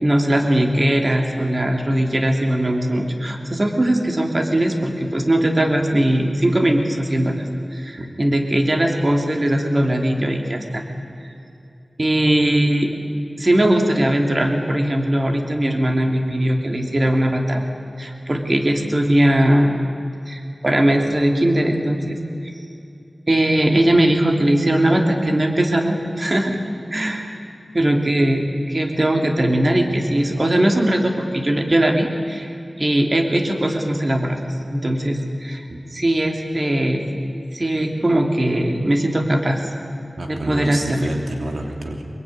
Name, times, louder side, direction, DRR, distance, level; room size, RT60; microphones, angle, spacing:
voice 1, 0.0-7.4 7.7-10.8 11.2-11.3 12.0-12.9 13.4-17.6 18.0-19.8 20.3-22.2 23.3-26.6 26.9-27.3 27.7-34.4 34.7-35.6 35.9-37.1 37.5-39.6 40.3-41.1, right 1 dB, 35° right, 3 dB, 3.1 m, -19 dB
voice 2, 40.2-42.0, right 2 dB, 85° right, 2 dB, 3.1 m, -29 dB
24.5 x 22.5 x 9.7 m, 2.6 s
wide cardioid pair, 65°, 0 cm